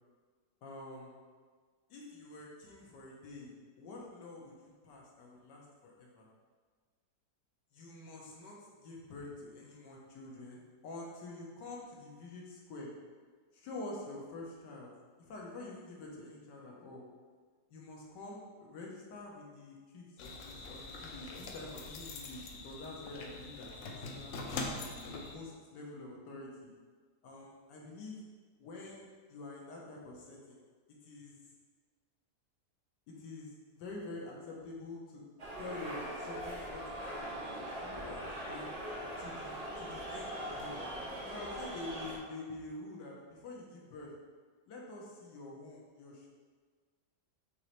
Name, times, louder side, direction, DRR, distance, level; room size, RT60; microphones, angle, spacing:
voice 1, 0.6-1.1 1.9-3.5 3.8-6.3 7.7-12.9 13.5-14.9 15.2-17.0 17.7-24.5 25.0-26.7 27.2-28.2 28.6-30.6 31.0-31.4 33.1-35.2 35.6-37.5 37.8-38.7 39.2-40.8 41.3-44.1 44.7-46.3, left 2 dB, 90° left, -2 dB, 1.5 m, -47 dB
sound 1, 20.2-25.3, left 3 dB, 70° left, 0.7 m, -43 dB
Holyfield vs. Valuev Crowd, 35.4-42.2, right 1 dB, 75° right, 0.3 m, -41 dB
5.3 x 3.1 x 3.0 m, 1.5 s
omnidirectional pair, 1.8 m